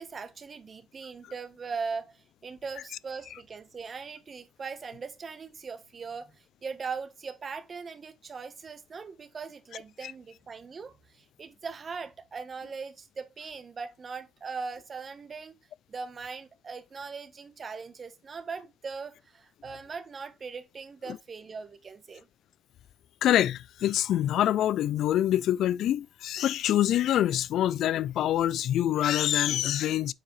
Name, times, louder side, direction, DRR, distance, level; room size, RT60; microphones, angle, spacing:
voice 1, 0.0-15.5 15.9-22.3, right 5 dB, 40° right, 1.1 m, -40 dB
voice 2, 23.2-30.1, left 12 dB, 75° left, 0.3 m, -25 dB
7.5 x 4.6 x 3.2 m
cardioid pair, 90°, 0 cm